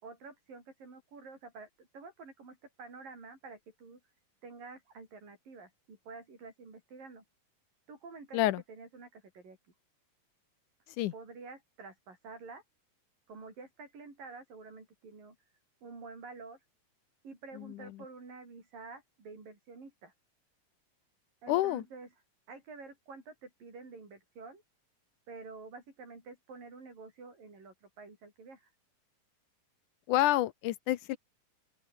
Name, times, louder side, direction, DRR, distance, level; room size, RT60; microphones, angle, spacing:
voice 1, 0.0-4.0 4.4-7.2 7.9-8.4 8.7-9.6 11.1-12.6 13.3-15.4 15.8-16.6 17.2-20.1 21.4-22.1 22.5-24.6 25.3-28.7, right 4 dB, 75° right, 8.9 m, -49 dB
voice 2, 17.6-17.9 21.5-21.8 30.1-31.2, left 15 dB, 75° left, 2.1 m, -29 dB
open air
omnidirectional pair, 4.0 m